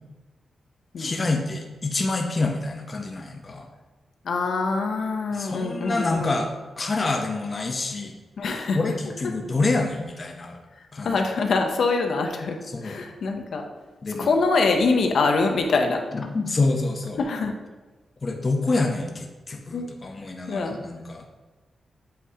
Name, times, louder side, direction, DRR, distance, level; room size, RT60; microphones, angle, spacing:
voice 1, 1.0-3.7 5.3-6.5 6.8-8.1 8.7-10.6 10.9-11.2 12.7-13.0 14.0-14.3 16.1-17.2 18.2-21.2, left 3 dB, 30° left, 2 dB, 0.6 m, -27 dB
voice 2, 4.3-6.4 8.4-8.8 11.0-12.6 12.8-13.6 14.2-16.0 17.2-17.5 19.7-19.9 20.5-20.8, left 3 dB, 70° left, 3 dB, 0.7 m, -24 dB
7.9 x 2.8 x 4.8 m, 1.3 s
wide cardioid pair, 165°, 0 cm